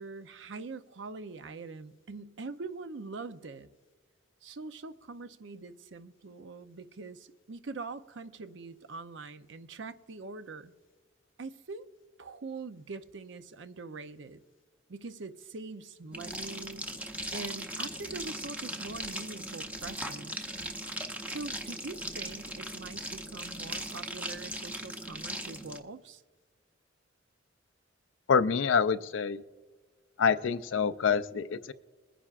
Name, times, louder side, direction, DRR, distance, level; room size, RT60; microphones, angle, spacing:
voice 1, 0.0-3.7 4.4-10.7 11.4-11.9 12.2-14.4 14.9-16.9 17.3-20.5 21.3-26.2, right 3 dB, 70° right, 0.6 m, -43 dB
sound 1, 16.1-25.8, right 1 dB, 10° right, 0.7 m, -39 dB
voice 2, 28.3-29.4 30.2-31.7, left 6 dB, 80° left, 0.5 m, -26 dB
22.0 x 10.0 x 2.5 m
head